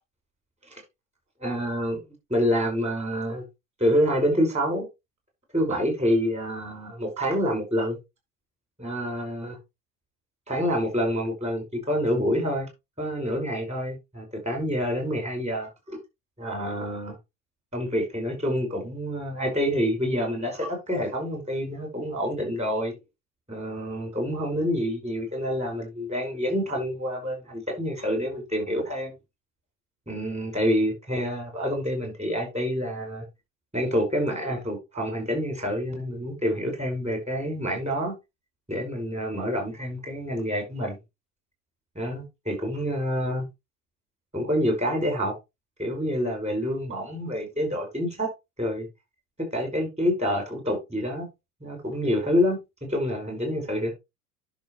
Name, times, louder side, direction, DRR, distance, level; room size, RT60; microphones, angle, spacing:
voice 1, 1.4-2.0 2.3-3.4 3.8-4.9 5.5-8.0 8.8-9.6 10.5-12.7 13.0-16.0 16.4-17.1 17.7-22.9 23.5-29.1 30.1-33.2 33.7-38.1 38.7-41.0 42.0-43.4 44.3-45.3 45.8-48.3 48.6-48.9 49.5-51.3 51.6-52.6 52.9-53.9, equal, 15° right, 5.4 m, -27 dB
10.5 x 6.6 x 3.2 m
figure-of-eight pair, 90°, 50 cm